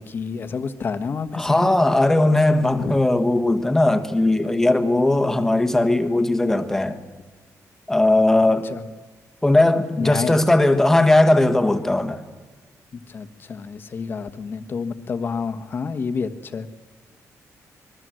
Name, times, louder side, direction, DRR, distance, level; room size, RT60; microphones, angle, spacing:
voice 1, 0.0-1.7 2.8-3.0 8.7-8.8 10.0-10.4 13.1-16.7, left 5 dB, 35° left, 1.3 m, -29 dB
voice 2, 1.3-7.0 7.9-8.7 9.4-12.2, left 2 dB, 5° left, 1.5 m, -18 dB
27.0 x 21.0 x 7.8 m
wide cardioid pair, 180°, 6 cm